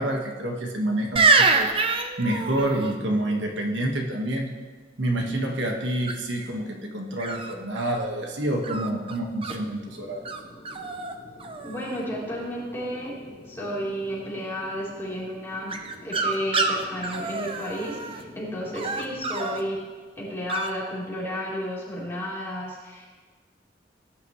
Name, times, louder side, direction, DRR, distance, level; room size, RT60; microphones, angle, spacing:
voice 1, 0.0-4.5 5.0-10.2, right 1 dB, 80° right, 1 dB, 1.6 m, -28 dB
sound 1, 1.2-2.9 6.1-6.5 7.2-8.0 8.6-9.6 10.3-10.4 10.7-11.1 11.4-12.0 15.7-18.2 18.7-19.6 20.5-20.7, right 4 dB, 30° right, 0.7 m, -26 dB
sound 2, 9.9-19.8, left 1 dB, 35° left, 1.4 m, -48 dB
voice 2, 11.6-13.1 13.5-15.7 16.0-19.9 20.2-23.2, equal, 15° left, -7 dB, 3.7 m, -32 dB
18.0 x 10.5 x 3.2 m, 1.4 s
head